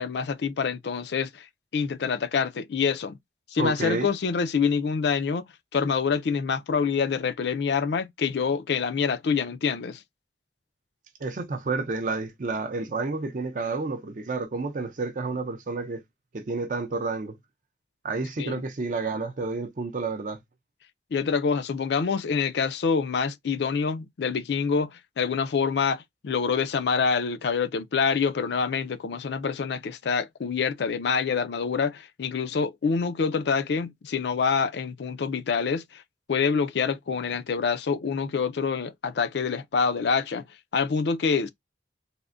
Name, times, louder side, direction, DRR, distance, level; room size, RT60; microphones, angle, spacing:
voice 1, 0.0-1.5 1.7-3.2 3.5-10.0 18.4-18.6 21.1-36.0 36.3-40.5 40.7-41.5, left 5 dB, 70° left, 0.4 m, -26 dB
voice 2, 3.6-4.1 11.2-16.0 16.3-17.4 18.0-20.4, right 3 dB, 45° right, 0.5 m, -30 dB
3.5 x 2.1 x 2.4 m
head